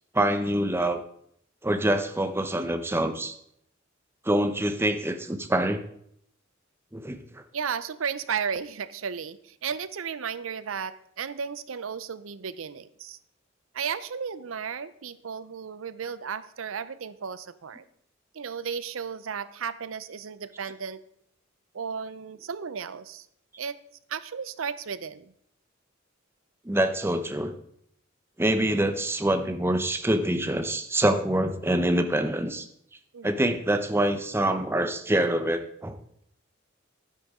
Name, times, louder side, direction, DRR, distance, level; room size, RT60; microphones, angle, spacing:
voice 1, 0.1-1.0 1.6-3.3 4.2-5.8 6.9-7.4 26.6-27.5 28.4-32.7 33.2-36.0, right 1 dB, 10° right, 8 dB, 0.8 m, -25 dB
voice 2, 7.5-13.2 13.7-17.8 18.3-21.0 21.7-23.3 23.6-23.8 24.1-25.3 33.1-33.5, right 6 dB, 85° right, 15 dB, 0.6 m, -34 dB
12.0 x 10.5 x 3.7 m, 0.69 s
head